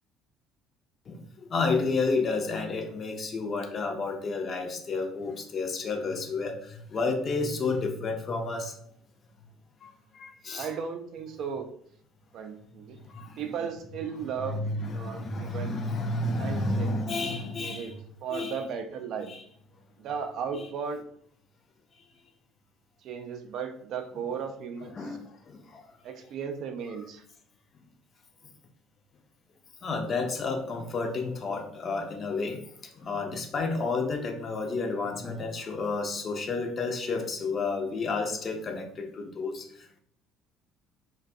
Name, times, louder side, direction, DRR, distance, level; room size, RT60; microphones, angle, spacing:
voice 1, 1.5-6.6 6.9-8.7 9.8-9.9 10.2-10.7 13.1-13.3 14.4-17.9 18.3-18.6 19.3-19.4 24.9-25.2 29.8-32.6 33.0-39.6, left 3 dB, 40° left, 4 dB, 0.4 m, -30 dB
voice 2, 10.5-11.7 12.3-13.0 13.4-14.6 14.9-15.8 16.4-16.9 17.6-18.0 18.2-19.3 20.0-21.0 23.0-25.2 26.0-27.2, right 6 dB, 55° right, 6 dB, 0.3 m, -35 dB
2.5 x 2.2 x 2.4 m, 0.65 s
figure-of-eight pair, 55°, 0 cm